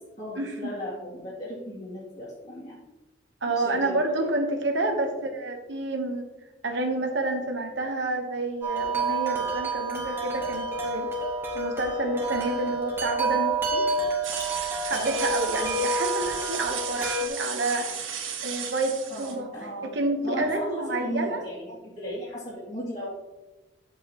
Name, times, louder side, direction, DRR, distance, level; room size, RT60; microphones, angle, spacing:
voice 1, 0.2-2.8 3.5-4.3 14.9-15.2 19.1-19.9 20.2-23.1, equal, 40° left, -8 dB, 2.7 m, -36 dB
voice 2, 3.4-6.3 6.6-11.1 11.5-13.8 14.8-19.5 19.8-21.4, right 2 dB, 65° right, 3 dB, 1.1 m, -29 dB
Wind chime, 8.6-17.3, right 2 dB, 10° right, 1.8 m, -29 dB
sound 1, 14.2-19.4, right 8 dB, 85° right, 1.7 m, -34 dB
10.5 x 8.2 x 3.0 m, 1.1 s
head